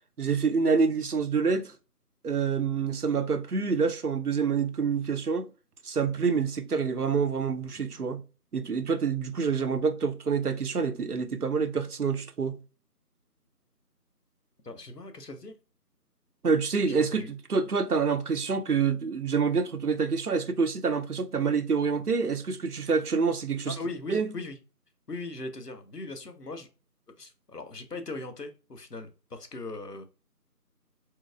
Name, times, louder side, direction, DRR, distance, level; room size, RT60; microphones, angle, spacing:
voice 1, 0.2-1.7 2.2-5.5 5.8-8.2 8.5-12.6 16.4-23.8 24.1-24.3, right 5 dB, 70° right, 0.7 m, -27 dB
voice 2, 14.6-15.5 17.0-17.3 23.7-24.6 25.1-26.7 27.2-30.0, left 3 dB, 80° left, 1.2 m, -39 dB
4.6 x 4.0 x 2.4 m
figure-of-eight pair, 170°, 48 cm